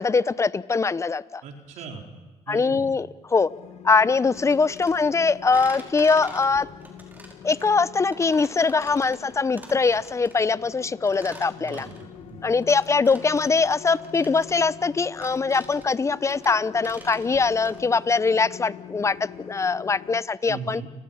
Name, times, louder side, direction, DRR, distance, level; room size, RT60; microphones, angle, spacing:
voice 1, 0.0-1.4 2.5-3.5 3.8-6.7 7.4-11.9 12.4-20.8, left 4 dB, 25° left, 17 dB, 0.7 m, -22 dB
voice 2, 1.4-2.0 2.5-2.9 11.6-12.4 20.5-20.9, right 5 dB, 75° right, 2 dB, 4.6 m, -39 dB
sound 1, 3.4-20.2, left 9 dB, 60° left, 1.6 m, -44 dB
sound 2, 4.3-17.8, right 1 dB, 15° right, 5.6 m, -46 dB
30.0 x 20.0 x 5.8 m, 1.3 s
cardioid pair, 95°, 12 cm